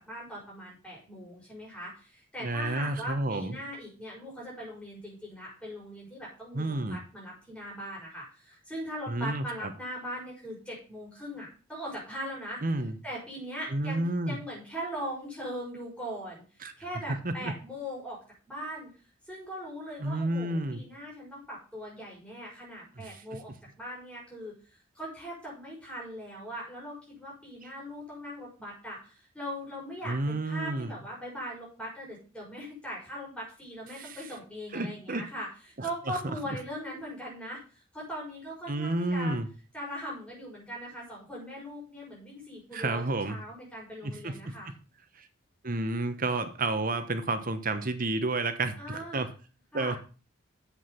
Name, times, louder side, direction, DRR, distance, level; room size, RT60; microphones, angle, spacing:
voice 1, 0.0-12.6 13.0-18.2 18.5-18.9 19.3-23.5 23.8-35.5 35.8-39.4 39.7-44.7 48.8-49.3 49.7-50.0, equal, 5° left, -5 dB, 6.3 m, -40 dB
voice 2, 2.4-3.6 6.5-7.0 9.1-9.7 12.6-12.9 13.7-14.4 16.6-16.7 17.2-17.5 20.0-20.8 23.0-23.2 30.0-30.9 33.9-34.2 34.7-35.2 35.8-36.2 38.7-39.5 42.7-43.4 44.0-44.7 45.2-45.3 45.6-49.3 49.7-50.0, right 2 dB, 45° right, 10 dB, 1.0 m, -31 dB
8.3 x 7.9 x 5.7 m, 0.36 s
head